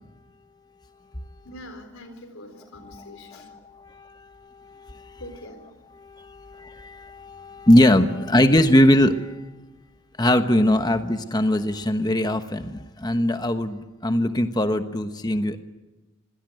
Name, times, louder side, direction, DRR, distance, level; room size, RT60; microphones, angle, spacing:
voice 1, 1.4-3.5 5.2-5.7, left 1 dB, 80° left, 7 dB, 3.9 m, -43 dB
voice 2, 2.9-5.2 5.9-9.5 10.2-15.6, left 1 dB, 20° left, 8 dB, 1.1 m, -21 dB
26.0 x 17.0 x 9.1 m, 1.1 s
head